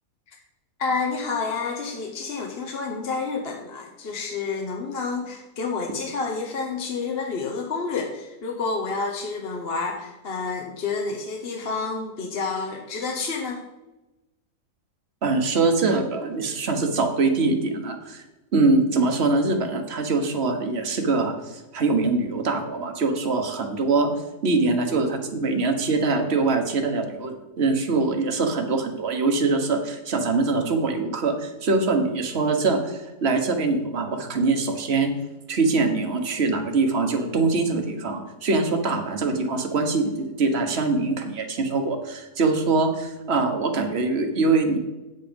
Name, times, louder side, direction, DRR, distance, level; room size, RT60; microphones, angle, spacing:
voice 1, 0.8-13.6, left 4 dB, 45° left, 2 dB, 1.0 m, -29 dB
voice 2, 15.2-18.2 18.5-24.1 24.4-35.1 35.5-44.8, right 3 dB, 45° right, 5 dB, 1.4 m, -23 dB
8.7 x 7.9 x 5.2 m, 1.0 s
omnidirectional pair, 1.6 m